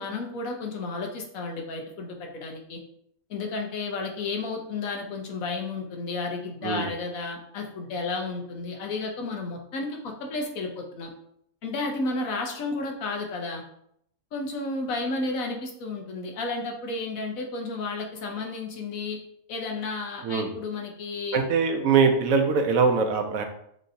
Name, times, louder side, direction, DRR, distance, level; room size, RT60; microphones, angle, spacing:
voice 1, 0.0-2.8 3.3-11.1 11.6-13.6 14.3-19.2 19.5-21.4, left 3 dB, 85° left, 2 dB, 1.3 m, -32 dB
voice 2, 21.3-23.4, right 5 dB, 85° right, 5 dB, 1.1 m, -22 dB
6.3 x 2.8 x 2.6 m, 0.71 s
omnidirectional pair, 1.4 m